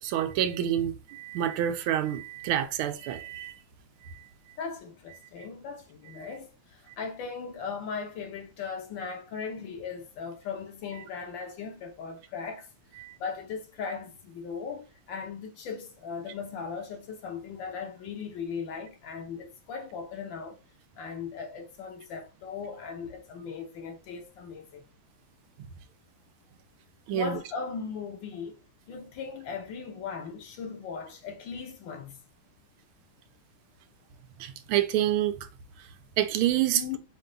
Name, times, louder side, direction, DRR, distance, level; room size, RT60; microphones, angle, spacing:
voice 1, 0.0-3.6 4.0-4.3 13.0-13.2 25.6-25.7 27.1-27.4 34.4-35.5 35.8-35.9 36.2-36.8, right 11 dB, 85° right, 1.5 m, -28 dB
voice 2, 4.6-12.7 12.9-20.6 21.0-24.8 27.1-28.6 28.9-32.2 36.7-37.0, left 5 dB, 65° left, 1.4 m, -38 dB
5.3 x 2.3 x 3.8 m
omnidirectional pair, 2.3 m